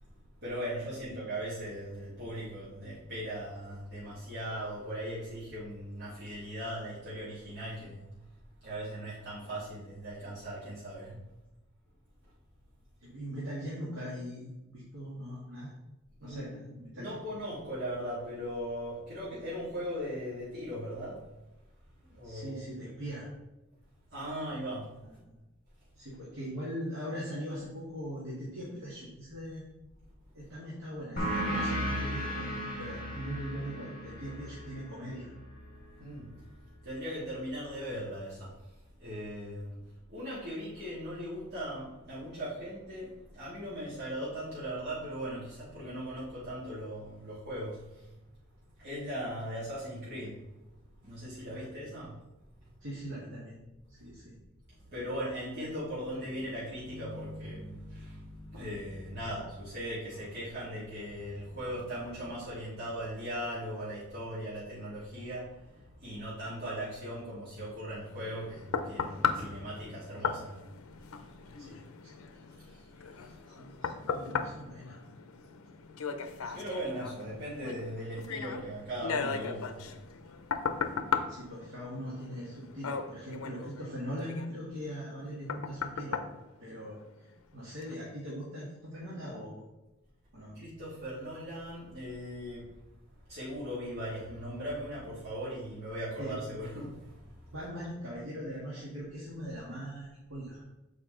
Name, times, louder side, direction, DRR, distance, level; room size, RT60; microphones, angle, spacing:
voice 1, 0.4-8.1 8.6-11.2 16.2-16.7 17.0-21.2 22.0-22.9 24.1-24.9 36.0-36.3 36.8-38.5 39.0-39.7 40.1-47.8 48.8-50.4 51.0-52.2 54.9-65.7 66.0-70.6 72.7-72.8 76.5-79.8 90.6-92.7 93.3-97.2, equal, 50° right, -11 dB, 2.2 m, -39 dB
voice 2, 13.0-15.7 16.2-17.2 22.2-23.3 25.0-25.3 25.9-29.6 30.3-35.3 51.5-51.7 52.8-53.6 53.9-54.3 59.2-59.3 71.6-71.9 73.5-75.0 76.4-76.6 81.3-86.2 86.6-89.6 90.3-90.6 96.2-96.4 97.5-100.6, equal, 65° right, -6 dB, 1.7 m, -41 dB
sound 1, 31.2-36.3, equal, 45° left, 1.6 m, -36 dB
sound 2, 68.0-87.3 87.8-87.9, left 6 dB, 85° left, 0.5 m, -37 dB
6.8 x 4.7 x 3.8 m, 1.0 s
head